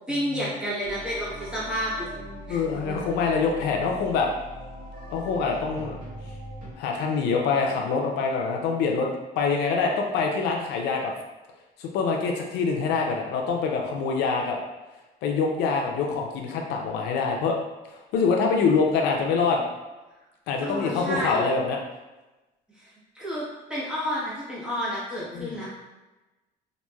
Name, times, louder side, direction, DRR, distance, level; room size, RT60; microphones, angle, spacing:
voice 1, 0.1-2.1 2.5-3.0 20.6-21.5 22.8-23.4 23.7-25.7, equal, 5° right, -8 dB, 1.1 m, -30 dB
sound 1, 0.8-6.7, right 1 dB, 50° right, 0.9 m, -40 dB
voice 2, 2.5-4.3 5.1-6.0 6.8-11.1 11.8-14.6 15.2-17.6 18.1-19.7 20.5-21.8 25.3-25.5, left 5 dB, 85° left, 1 dB, 0.5 m, -25 dB
3.0 x 2.5 x 2.3 m, 1.1 s
cardioid pair, 110°, 17 cm